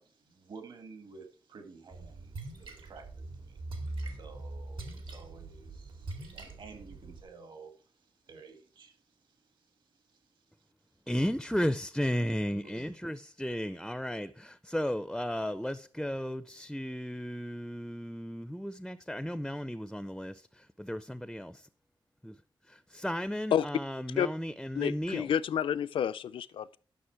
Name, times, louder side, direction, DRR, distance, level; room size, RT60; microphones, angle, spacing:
voice 1, 0.0-11.0 12.6-13.2 13.6-13.9, right 4 dB, 65° right, 1.9 m, -53 dB
Splash splatter, 1.9-7.2, right 2 dB, 80° right, 2.3 m, -42 dB
voice 2, 11.1-21.5 22.2-22.4 22.7-25.3, equal, ahead, 0.4 m, -34 dB
voice 3, 24.7-26.8, left 9 dB, 90° left, 0.4 m, -29 dB
11.5 x 6.3 x 4.5 m
wide cardioid pair, 145°, 9 cm